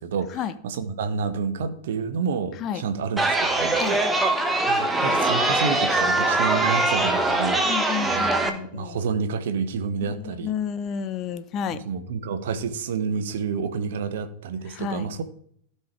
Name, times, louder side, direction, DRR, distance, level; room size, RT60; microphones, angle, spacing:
voice 1, 0.0-3.8 4.7-7.6 8.0-10.5 11.7-15.2, right 5 dB, 60° right, 1.0 m, -29 dB
Chatter, 3.2-8.5, right 2 dB, 10° right, 1.2 m, -22 dB
voice 2, 7.6-9.0 10.4-11.8 14.8-15.1, left 8 dB, 35° left, 0.6 m, -30 dB
15.5 x 5.6 x 3.3 m
figure-of-eight pair, 90°, 0 cm